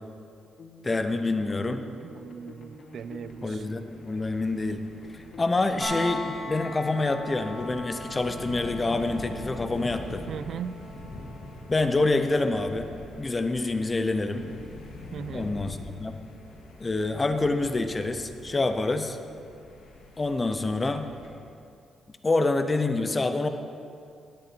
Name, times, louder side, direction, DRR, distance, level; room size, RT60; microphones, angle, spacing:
sound 1, 0.6-7.7, left 2 dB, 50° left, 1.3 m, -48 dB
voice 1, 0.8-1.9 3.4-4.8 5.1-10.3 11.7-12.9 13.2-14.5 15.3-16.2 16.8-19.2 20.2-21.1 22.2-23.5, left 2 dB, 20° left, 8 dB, 0.6 m, -27 dB
voice 2, 2.1-3.6 10.3-10.8 15.1-15.5, right 7 dB, 50° right, 15 dB, 0.4 m, -38 dB
sound 2, 2.2-21.3, left 2 dB, 85° left, 2.1 m, -44 dB
sound 3, 5.8-17.6 19.5-19.6, equal, 10° right, 3.6 m, -42 dB
17.0 x 8.6 x 4.4 m, 2.5 s
cardioid pair, 155°, 0 cm